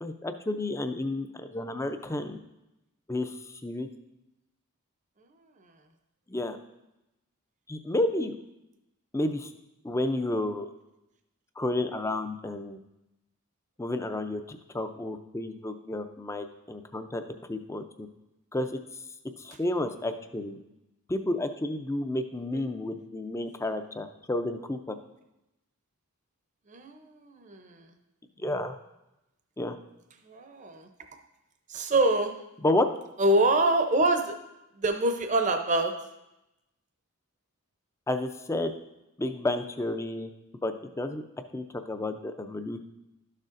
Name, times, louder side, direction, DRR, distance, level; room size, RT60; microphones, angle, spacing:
voice 1, 0.0-2.4 3.1-3.4 3.6-3.9 6.3-6.6 7.7-8.4 9.1-9.5 9.8-10.7 11.6-12.8 13.8-17.2 17.5-18.1 18.5-18.8 19.4-20.6 21.1-25.0 28.4-28.7 29.6-29.8 32.6-32.9 38.1-38.7 39.2-40.3 40.6-41.2 41.5-42.9, left 1 dB, 15° left, 8 dB, 0.4 m, -31 dB
voice 2, 26.7-27.9 30.2-30.9 31.7-32.4 33.2-34.4 34.8-35.9, right 2 dB, 35° right, 6 dB, 0.6 m, -25 dB
12.0 x 6.5 x 2.5 m, 0.92 s
head